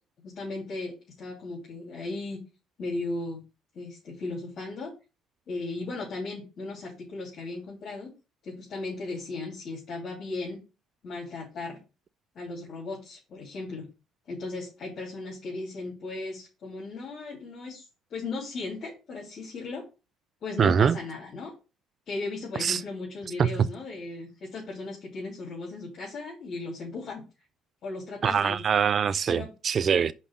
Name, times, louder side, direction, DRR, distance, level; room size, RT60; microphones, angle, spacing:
voice 1, 0.2-2.4 2.8-3.4 3.7-4.9 5.5-8.1 8.4-10.6 11.0-11.8 12.3-13.9 14.3-17.8 18.1-19.8 20.4-21.5 22.1-27.2 27.8-28.6 29.3-29.5, left 3 dB, 55° left, 2.8 m, -36 dB
voice 2, 20.6-21.0 22.6-22.8 23.4-23.5 28.2-30.1, right 7 dB, 45° right, 0.4 m, -23 dB
5.3 x 4.0 x 6.0 m
supercardioid pair, 85°, 0 cm